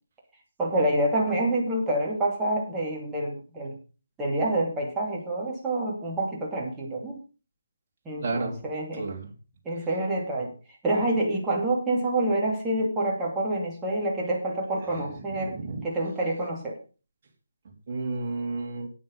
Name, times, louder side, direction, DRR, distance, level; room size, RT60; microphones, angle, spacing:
voice 1, 0.6-3.8 4.2-7.2 8.0-9.1 9.6-10.5 10.8-16.8, right 1 dB, 10° right, -4 dB, 2.8 m, -27 dB
voice 2, 8.2-8.6 8.9-9.3 14.9-15.8 17.6-18.9, right 3 dB, 35° right, 0 dB, 3.2 m, -32 dB
9.4 x 9.1 x 5.3 m, 0.35 s
figure-of-eight pair, 145°, 0 cm